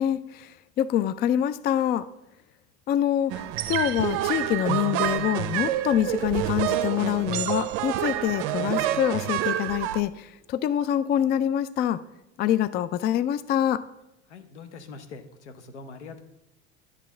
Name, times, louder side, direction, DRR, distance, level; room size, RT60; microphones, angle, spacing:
voice 1, 0.0-2.1 2.9-12.0 12.4-13.8, left 11 dB, 30° left, 14 dB, 0.4 m, -25 dB
sound 1, 3.3-10.0, right 13 dB, 55° right, 0.6 m, -28 dB
sound 2, 5.4-11.3, right 3 dB, 5° right, 1.0 m, -49 dB
voice 2, 14.3-16.2, left 4 dB, 85° left, 8 dB, 0.9 m, -43 dB
10.0 x 3.4 x 7.0 m, 0.91 s
hypercardioid pair, 80°, 34 cm